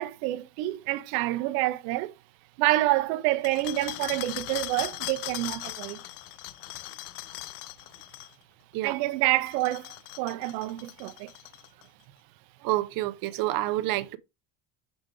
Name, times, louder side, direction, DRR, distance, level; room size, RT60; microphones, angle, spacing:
voice 1, 0.0-2.1 2.6-6.0 8.8-11.3, right 17 dB, 80° right, 0.8 m, -28 dB
sound 1, 3.4-8.3 9.4-11.8, left 18 dB, 75° left, 0.6 m, -39 dB
voice 2, 12.6-14.2, right 16 dB, 45° right, 0.6 m, -28 dB
6.1 x 5.0 x 3.7 m
cardioid pair, 155°, 48 cm